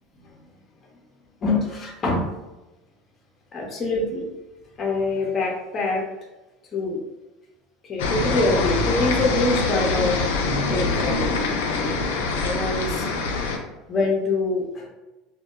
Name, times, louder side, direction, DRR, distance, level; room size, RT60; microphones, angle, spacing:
voice 1, 1.4-2.3 3.5-4.2 4.8-6.0 6.7-7.0 7.8-10.2 10.7-11.3 11.7-11.9 12.4-13.1 13.9-14.9, left 2 dB, 35° left, -1 dB, 0.6 m, -24 dB
sound 1, 8.0-13.6, left 3 dB, 80° left, 0.4 m, -24 dB
2.1 x 2.1 x 2.9 m, 1.0 s
hypercardioid pair, 90°, 0 cm